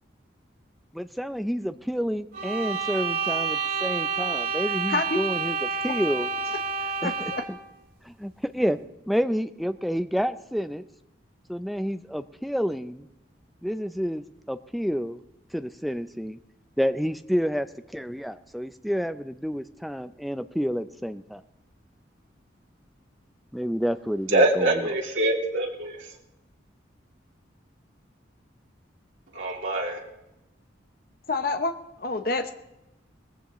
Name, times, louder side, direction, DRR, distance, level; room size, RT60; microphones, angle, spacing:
voice 1, 0.9-6.3 7.0-7.3 8.1-8.8 9.1-10.8 11.5-13.1 13.6-15.2 15.5-16.4 16.8-21.4 23.5-24.7, equal, ahead, 10 dB, 0.4 m, -29 dB
sound 1, 2.3-7.6, right 5 dB, 45° right, 2.7 m, -29 dB
voice 2, 7.0-7.4 31.3-31.7 32.0-32.5, left 3 dB, 50° left, 6 dB, 0.8 m, -27 dB
voice 3, 24.3-26.0 29.3-30.0, right 1 dB, 85° right, -2 dB, 2.8 m, -24 dB
19.5 x 15.5 x 3.1 m, 0.91 s
head